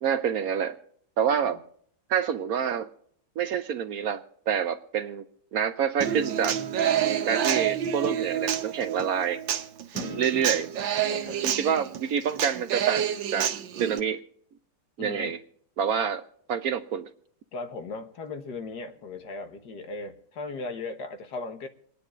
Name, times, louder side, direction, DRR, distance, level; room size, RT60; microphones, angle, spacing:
voice 1, 0.0-0.8 1.2-1.6 2.1-2.9 3.4-5.3 5.5-6.6 7.3-9.4 10.2-10.7 11.4-13.5 13.8-14.2 15.0-15.4 15.8-17.1, right 7 dB, 65° right, 10 dB, 1.0 m, -27 dB
Human voice / Acoustic guitar, 6.0-14.0, right 9 dB, 90° right, 1.6 m, -28 dB
voice 2, 9.9-10.5 11.0-11.4 15.0-15.3 17.5-21.7, left 3 dB, 65° left, 7 dB, 1.7 m, -37 dB
28.0 x 9.8 x 2.5 m, 0.64 s
omnidirectional pair, 2.0 m